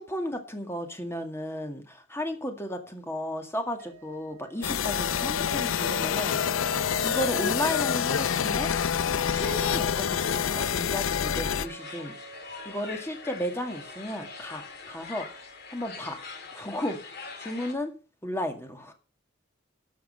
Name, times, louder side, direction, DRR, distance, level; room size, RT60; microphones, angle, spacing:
voice 1, 0.0-8.7 9.3-12.1 12.7-15.3 15.7-16.2 16.5-17.0 17.4-17.9 18.2-18.9, left 1 dB, 15° left, 2.0 m, -34 dB
sound 1, 3.8-16.7, right 2 dB, 50° right, 3.8 m, -47 dB
sound 2, 4.6-11.7, left 8 dB, 80° left, 0.5 m, -27 dB
sound 3, 9.9-17.7, left 4 dB, 55° left, 2.6 m, -44 dB
12.5 x 6.5 x 6.3 m
head